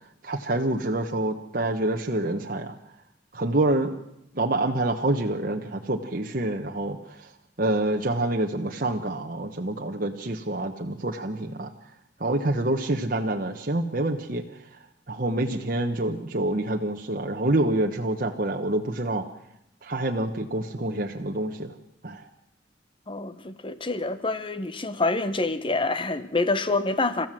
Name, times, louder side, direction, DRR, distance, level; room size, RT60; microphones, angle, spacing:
voice 1, 0.2-2.8 3.3-4.0 4.3-7.3 7.6-11.7 12.2-14.8 15.1-19.3 19.8-21.7 22.0-22.3, right 1 dB, 50° right, 1.2 m, -27 dB
voice 2, 23.1-27.3, left 3 dB, 25° left, 1.1 m, -27 dB
30.0 x 14.5 x 7.6 m
head